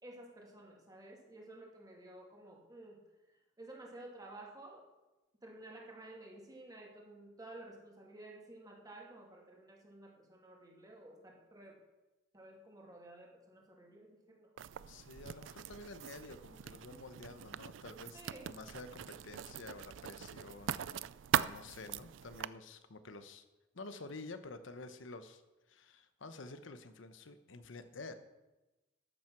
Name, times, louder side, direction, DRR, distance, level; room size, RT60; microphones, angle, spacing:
voice 1, 0.0-3.0 3.6-4.8 5.4-11.8 12.3-14.5 18.1-18.5, right 1 dB, 20° right, -1 dB, 2.6 m, -53 dB
Writing, 14.6-22.5, right 9 dB, 75° right, 0.4 m, -41 dB
voice 2, 14.9-21.1 21.4-23.4 23.7-25.4 25.7-28.1, left 3 dB, 80° left, 10 dB, 0.9 m, -50 dB
13.5 x 7.6 x 5.9 m, 1.0 s
head